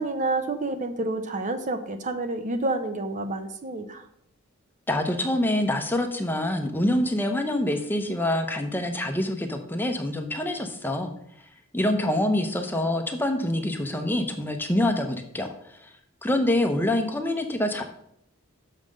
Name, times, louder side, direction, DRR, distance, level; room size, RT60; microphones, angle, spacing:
voice 1, 0.0-4.1, right 2 dB, 35° right, 8 dB, 0.7 m, -29 dB
voice 2, 4.9-11.1 11.7-15.9 16.2-17.8, left 1 dB, 10° left, 5 dB, 0.7 m, -26 dB
6.5 x 5.6 x 6.3 m, 0.73 s
head